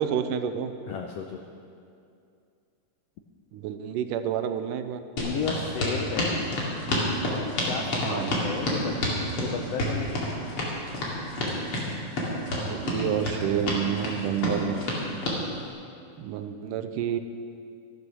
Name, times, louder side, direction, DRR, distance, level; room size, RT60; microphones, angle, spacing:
voice 1, 0.0-0.7 3.5-5.0 8.0-8.4 12.5-14.9 16.2-17.2, right 9 dB, 85° right, 9 dB, 2.2 m, -29 dB
voice 2, 0.9-1.4 5.2-6.4 7.6-10.2, left 6 dB, 80° left, 3 dB, 1.4 m, -33 dB
sound 1, 5.2-15.4, left 1 dB, 45° left, 2.9 m, -28 dB
14.0 x 11.0 x 6.2 m, 2.4 s
omnidirectional pair, 3.7 m